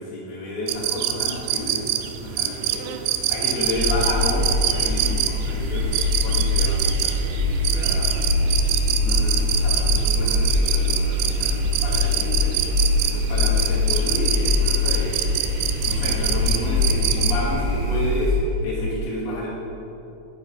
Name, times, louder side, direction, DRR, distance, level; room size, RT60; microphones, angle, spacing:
voice 1, 0.0-2.9 3.3-5.9 6.2-7.2 7.7-8.2 9.0-12.5 13.0-15.2 15.8-19.5, left 1 dB, 85° left, -6 dB, 4.1 m, -30 dB
sound 1, 0.7-17.4, right 10 dB, 80° right, 2.0 m, -26 dB
sound 2, 3.7-18.4, left 3 dB, 45° right, 2.0 m, -23 dB
9.0 x 9.0 x 4.2 m, 2.8 s
omnidirectional pair, 4.3 m